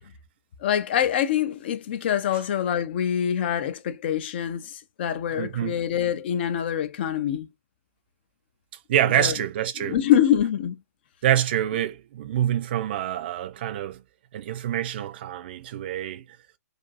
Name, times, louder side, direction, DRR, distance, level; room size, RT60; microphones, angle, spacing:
voice 1, 0.6-7.5 9.2-9.3 9.8-10.8, left 10 dB, 40° left, 0.4 m, -25 dB
voice 2, 5.4-5.8 8.9-10.0 11.2-14.0 14.3-16.2, right 11 dB, 35° right, 0.4 m, -26 dB
2.5 x 2.5 x 2.3 m
figure-of-eight pair, 130°, 9 cm